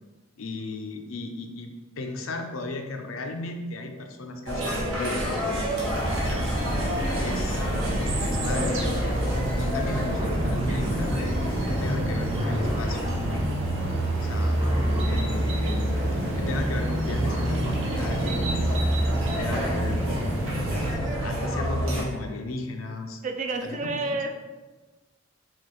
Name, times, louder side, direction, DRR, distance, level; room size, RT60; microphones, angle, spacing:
voice 1, 0.4-5.9 6.2-6.5 7.2-7.6 8.2-9.0 9.6-13.1 14.1-14.7 15.0-18.7 19.4-20.6 21.2-23.2 23.6-24.2, left 2 dB, 85° left, 4 dB, 0.5 m, -35 dB
sound 1, 4.5-22.0, right 1 dB, 85° right, 1.1 m, -27 dB
sound 2, 5.8-21.0, right 1 dB, 65° right, 0.7 m, -33 dB
Cough, 8.2-8.3 8.5-15.8 17.0-18.0 19.6-19.7 20.8-21.1 21.5-21.6 22.0-22.5, equal, 20° right, 0.7 m, -41 dB
voice 2, 20.8-21.4 23.2-24.3, right 3 dB, 35° right, 5 dB, 0.3 m, -31 dB
5.7 x 2.4 x 3.1 m, 1.2 s
head